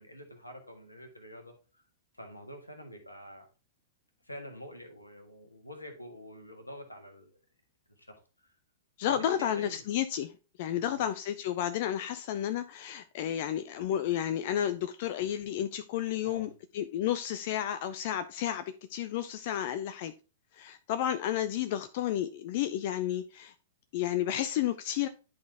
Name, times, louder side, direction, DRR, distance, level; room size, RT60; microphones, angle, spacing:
voice 1, 0.0-1.8 2.1-3.4 4.2-7.4 8.0-8.5 9.1-9.8 10.7-11.0 16.2-16.5, equal, 85° left, 1.6 m, -47 dB
voice 2, 9.0-10.3 10.6-20.1 20.5-23.5 23.9-25.1, left 11 dB, 45° left, 0.4 m, -32 dB
10.5 x 4.1 x 3.3 m
figure-of-eight pair, 105°, 0 cm